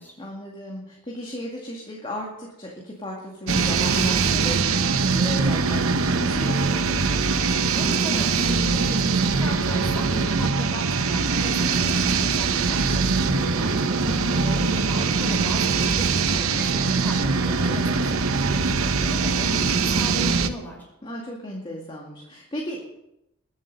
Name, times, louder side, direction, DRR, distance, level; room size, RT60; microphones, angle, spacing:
voice 1, 0.2-7.2 13.3-13.8 21.0-22.9, equal, 25° left, -2 dB, 2.1 m, -35 dB
sound 1, 3.5-20.5, right 4 dB, 80° right, 0.9 m, -22 dB
voice 2, 7.7-20.9, equal, 10° left, -1 dB, 5.3 m, -37 dB
sound 2, 9.6-11.8 12.4-15.4 16.6-20.4, right 1 dB, 40° left, 2.1 m, -46 dB
sound 3, 11.0-20.5, right 3 dB, 25° right, 0.4 m, -36 dB
22.0 x 8.0 x 5.4 m, 0.87 s
head